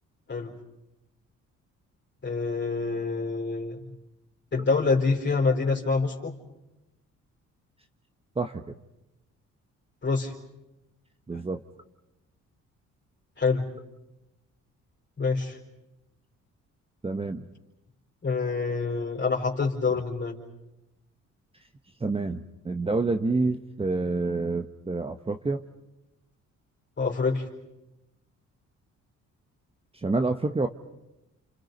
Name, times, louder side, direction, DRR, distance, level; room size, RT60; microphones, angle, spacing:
voice 1, 2.2-3.9 4.5-6.4 10.0-10.3 13.4-13.7 15.2-15.6 18.2-20.4 27.0-27.4, left 4 dB, 35° left, -2 dB, 4.3 m, -26 dB
voice 2, 8.4-8.8 11.3-11.6 17.0-17.5 22.0-25.6 29.9-30.7, right 3 dB, 20° right, 7 dB, 1.2 m, -28 dB
29.5 x 28.5 x 5.4 m, 0.95 s
cardioid pair, 90°, 30 cm